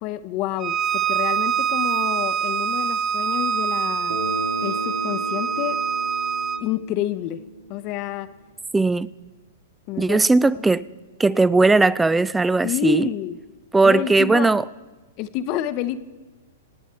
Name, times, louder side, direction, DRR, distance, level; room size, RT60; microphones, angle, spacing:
voice 1, 0.0-4.2 4.6-5.8 6.6-7.4 7.7-8.3 9.9-10.2 10.5-10.7 12.6-13.4 13.8-14.5 15.2-16.0, left 12 dB, 40° left, 0.8 m, -28 dB
Bowed string instrument, 0.6-6.6, right 7 dB, 30° right, 0.8 m, -24 dB
Bass guitar, 4.1-8.3, equal, 85° right, 3.5 m, -35 dB
voice 2, 8.7-9.1 10.0-10.8 11.2-13.1 13.7-14.6, right 3 dB, 10° right, 0.4 m, -18 dB
26.0 x 9.2 x 4.5 m
figure-of-eight pair, 110°, 0 cm